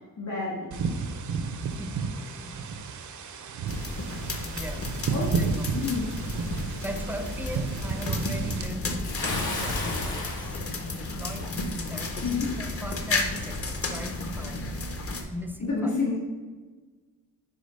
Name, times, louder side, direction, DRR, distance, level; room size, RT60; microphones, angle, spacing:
voice 1, 0.2-0.7 5.1-5.4 5.7-6.1 12.2-12.5 15.6-16.2, left 4 dB, 55° left, -5 dB, 2.1 m, -29 dB
sound 1, 0.7-8.7, right 5 dB, 55° right, 0.5 m, -32 dB
voice 2, 2.3-2.6 4.5-4.9 5.4-5.7 6.8-10.7 11.0-11.5 11.9-14.8 15.3-15.9, equal, 5° right, 5 dB, 0.4 m, -38 dB
sound 2, 3.7-15.2, left 2 dB, 40° left, 0.7 m, -33 dB
Bathtub (filling or washing) / Splash splatter, 9.0-11.5, left 2 dB, 90° left, 1.4 m, -33 dB
5.0 x 4.8 x 5.3 m, 1.3 s
wide cardioid pair, 165°, 35 cm